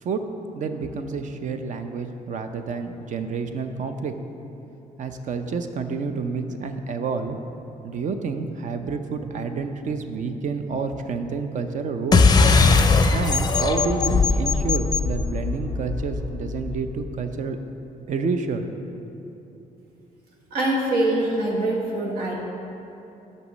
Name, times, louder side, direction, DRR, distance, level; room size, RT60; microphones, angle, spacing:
voice 1, 0.0-4.1 5.0-7.4 7.8-12.4 13.1-17.6 18.1-18.6, right 4 dB, 55° right, 7 dB, 0.6 m, -29 dB
sound 1, 12.1-17.0, left 4 dB, 30° left, 0.5 m, -20 dB
voice 2, 20.5-22.3, right 1 dB, 85° right, -3 dB, 1.5 m, -23 dB
6.8 x 5.5 x 6.2 m, 3.0 s
cardioid pair, 95°, 15 cm